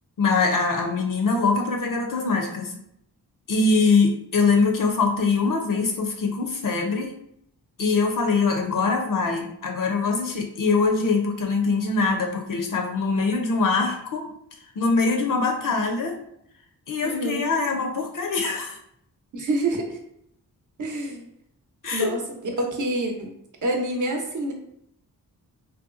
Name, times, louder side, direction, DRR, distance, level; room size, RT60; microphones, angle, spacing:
voice 1, 0.2-2.8 3.5-7.1 7.8-14.3 14.8-16.2 16.9-18.8 21.8-22.2, left 4 dB, 55° left, 2 dB, 0.5 m, -23 dB
voice 2, 17.0-17.5 19.3-20.0 20.8-21.3 21.9-22.2 22.6-24.5, right 1 dB, 45° right, 1 dB, 0.8 m, -27 dB
2.7 x 2.2 x 2.4 m, 0.73 s
cardioid pair, 40°, 41 cm